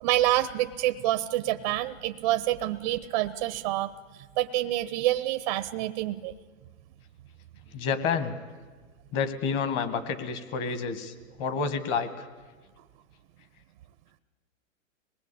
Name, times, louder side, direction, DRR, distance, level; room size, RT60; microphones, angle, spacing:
voice 1, 0.0-3.9 4.4-6.3, right 15 dB, 30° right, 12 dB, 0.6 m, -27 dB
voice 2, 7.7-8.3 9.1-11.1 11.4-12.2, left 5 dB, 30° left, 10 dB, 1.8 m, -29 dB
26.0 x 19.5 x 8.5 m, 1.4 s
hypercardioid pair, 150°, 39 cm